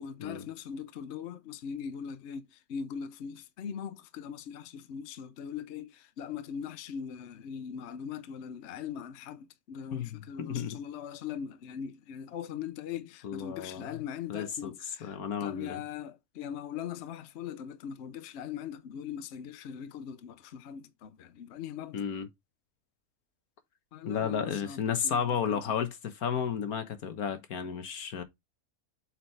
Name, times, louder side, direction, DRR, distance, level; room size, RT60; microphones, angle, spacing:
voice 1, 0.0-22.1 23.9-25.8, left 8 dB, 55° left, 0.9 m, -41 dB
voice 2, 9.9-10.8 13.2-14.0 14.3-15.8 21.9-22.3 24.1-28.2, left 7 dB, 80° left, 1.6 m, -33 dB
7.7 x 4.5 x 3.2 m
omnidirectional pair, 1.5 m